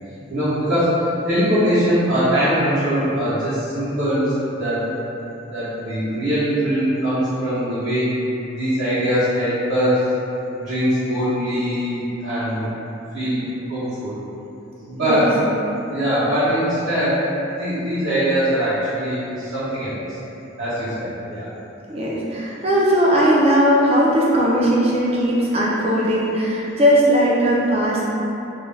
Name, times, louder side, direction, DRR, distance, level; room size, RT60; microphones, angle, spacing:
voice 1, 0.3-4.3 4.6-4.8 5.4-8.1 8.5-10.1 10.6-12.7 13.1-13.4 13.7-14.1 14.8-15.3 15.9-17.2 17.6-20.0 20.6-21.4, equal, 60° right, -15 dB, 0.7 m, -21 dB
voice 2, 21.9-28.0, equal, 30° right, -5 dB, 0.4 m, -18 dB
2.4 x 2.2 x 3.1 m, 3.0 s
head